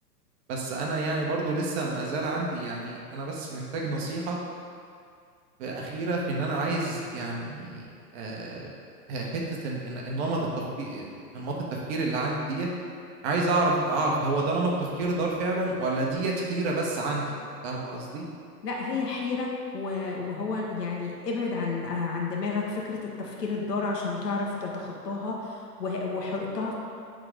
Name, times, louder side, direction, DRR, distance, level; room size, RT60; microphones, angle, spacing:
voice 1, 0.5-4.4 5.6-8.7 9.1-12.7 13.2-17.3 17.6-18.2, right 2 dB, 40° right, -2 dB, 1.2 m, -29 dB
voice 2, 18.6-26.7, left 4 dB, 75° left, -1 dB, 1.5 m, -31 dB
10.0 x 3.9 x 3.5 m, 2.3 s
hypercardioid pair, 120°, 49 cm